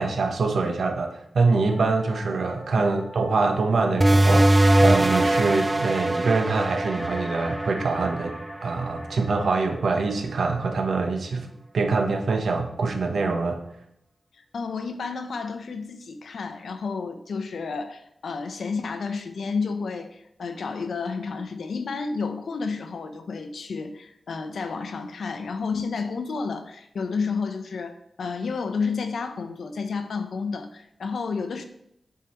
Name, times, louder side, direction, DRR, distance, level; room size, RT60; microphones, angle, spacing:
voice 1, 0.0-8.3 8.6-11.5 11.7-13.6, right 3 dB, 80° right, 4 dB, 0.9 m, -24 dB
sound 1, 1.7-5.7 6.0-6.1 6.7-11.4, left 1 dB, 45° left, 1.9 m, -47 dB
sound 2, 4.0-9.2, right 1 dB, 20° right, 0.4 m, -21 dB
voice 2, 14.4-31.6, left 4 dB, 85° left, 8 dB, 0.7 m, -31 dB
8.1 x 4.8 x 3.0 m, 0.77 s
wide cardioid pair, 105°, 0 cm